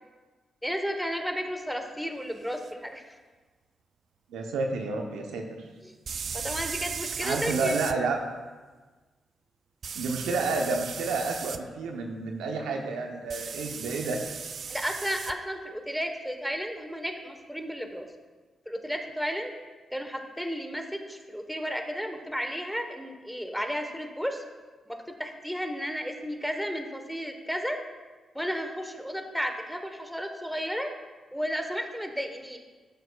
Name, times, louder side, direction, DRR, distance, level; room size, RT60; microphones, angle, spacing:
voice 1, 0.6-3.0 5.8-5.9 6.3-7.7 14.7-18.0 18.7-19.5 19.9-24.4 24.9-27.8 28.3-30.9 31.3-32.6, equal, ahead, 5 dB, 1.1 m, -33 dB
sound 1, 2.6-2.7 6.1-8.0 9.8-11.6 13.3-15.3, right 6 dB, 60° right, 0.3 m, -36 dB
voice 2, 4.3-5.7 7.2-8.2 9.9-14.2, right 3 dB, 85° right, 3 dB, 0.8 m, -30 dB
12.5 x 6.5 x 2.3 m, 1.3 s
supercardioid pair, 50°, 0 cm